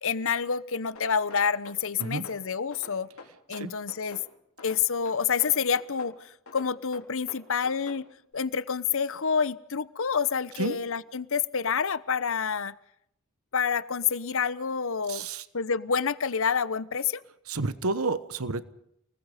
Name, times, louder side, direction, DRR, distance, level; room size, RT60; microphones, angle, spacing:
voice 1, 0.0-3.1 3.5-4.2 4.6-8.1 8.3-12.7 13.5-15.3 15.5-17.2, left 6 dB, 65° left, 16 dB, 1.0 m, -28 dB
sound 1, 1.0-2.4 2.7-4.3 4.6-6.2 6.5-8.0, left 3 dB, 85° left, 3.6 m, -47 dB
voice 2, 15.1-15.4 17.5-18.7, right 3 dB, 75° right, 14 dB, 1.2 m, -30 dB
29.5 x 20.0 x 5.1 m, 0.76 s
head